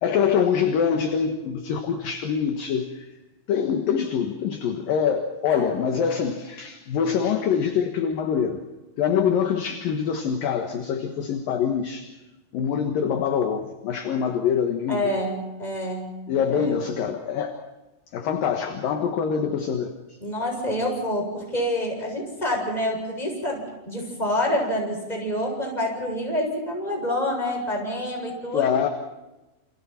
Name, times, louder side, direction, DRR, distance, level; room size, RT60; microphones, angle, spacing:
voice 1, 0.0-3.1 3.5-8.6 9.0-12.1 12.5-15.1 16.3-17.6 18.1-19.9 28.5-28.9, left 7 dB, 60° left, 5 dB, 2.5 m, -24 dB
voice 2, 5.5-6.0 14.9-16.2 16.5-16.7 20.2-28.7, left 1 dB, 10° left, 0 dB, 7.4 m, -27 dB
29.0 x 28.0 x 4.4 m, 1.0 s
omnidirectional pair, 5.8 m